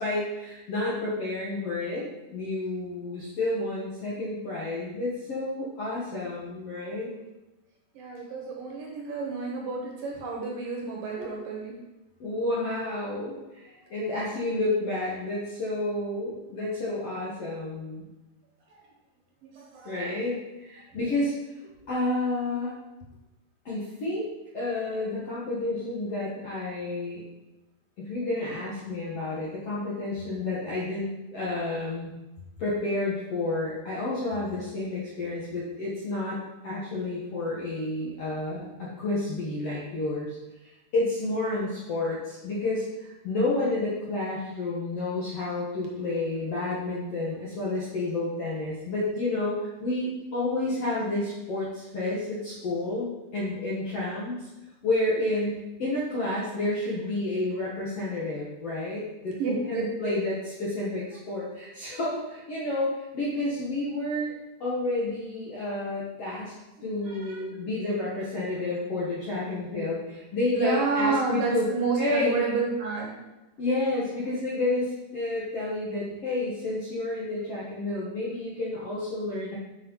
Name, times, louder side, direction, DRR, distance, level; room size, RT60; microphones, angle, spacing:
voice 1, 0.0-7.1 12.2-18.1 19.8-21.3 21.9-22.7 23.6-24.3 24.5-27.2 28.0-32.1 32.6-36.4 36.6-40.4 40.9-54.5 54.8-64.3 64.6-66.5 66.8-71.7 72.0-72.4 73.6-79.6, left 2 dB, 60° left, -7 dB, 1.7 m, -30 dB
voice 2, 7.9-11.8 13.8-13.9 18.7-18.9 19.4-20.2 59.3-60.2 67.0-67.4 70.5-73.1, right 4 dB, 65° right, -1 dB, 2.6 m, -30 dB
8.2 x 5.1 x 5.6 m, 0.99 s
omnidirectional pair, 4.8 m